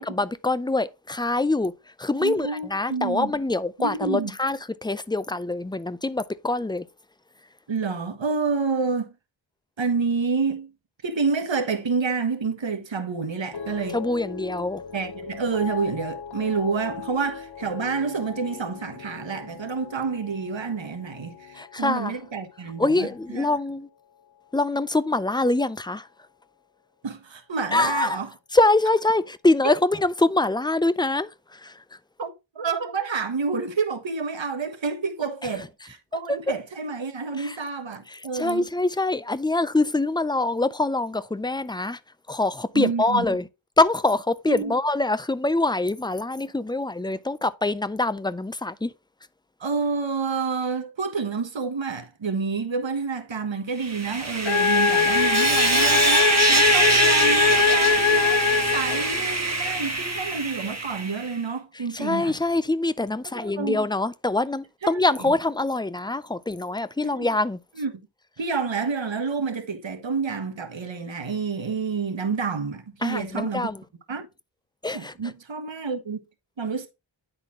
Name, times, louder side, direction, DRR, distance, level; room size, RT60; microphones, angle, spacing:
voice 1, 0.0-1.7 2.0-6.8 13.9-14.8 21.6-22.1 22.8-23.9 24.5-26.0 27.7-28.2 28.5-31.3 31.6-31.7 37.4-37.6 38.3-42.0 42.3-43.4 43.8-48.9 61.9-67.6 73.0-73.8 74.8-75.1, left 2 dB, 10° left, 0.5 m, -24 dB
voice 2, 2.1-3.3 3.8-4.3 7.7-9.1 9.8-10.7 11.0-14.0 14.9-23.5 27.0-28.3 32.2-38.7 42.7-43.3 44.5-44.7 49.6-62.4 63.3-63.8 64.8-65.3 67.0-67.3 67.7-67.9 68.4-73.7 74.1-74.3 74.9-76.2 76.6-76.9, right 5 dB, 75° right, 1.3 m, -29 dB
sound 1, 13.5-23.9 24.2-24.7, left 7 dB, 60° left, 0.9 m, -39 dB
Sawing, 53.8-61.3, right 2 dB, 35° right, 1.2 m, -23 dB
sound 2, 54.4-59.3, left 6 dB, 90° left, 0.7 m, -22 dB
9.9 x 4.2 x 3.8 m
wide cardioid pair, 55°, 46 cm